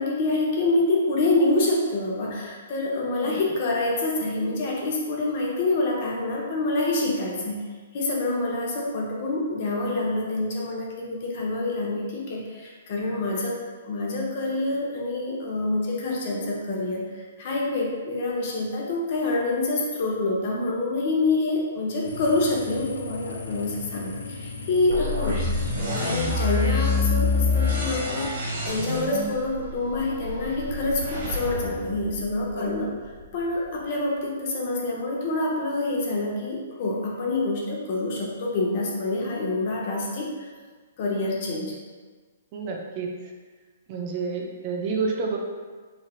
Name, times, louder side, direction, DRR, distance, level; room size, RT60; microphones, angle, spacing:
voice 1, 0.0-7.7 7.9-13.6 13.8-28.3 28.6-32.9 33.3-40.5 41.0-41.7, left 2 dB, 50° left, -2 dB, 0.7 m, -26 dB
sound 1, 22.0-28.3, left 3 dB, 85° left, 0.4 m, -37 dB
sound 2, 24.9-32.8, left 3 dB, 65° right, 1.1 m, -27 dB
voice 2, 42.5-43.3 43.9-45.4, right 4 dB, 40° right, 0 dB, 0.4 m, -30 dB
3.1 x 2.8 x 2.3 m, 1.4 s
hypercardioid pair, 135°, 0 cm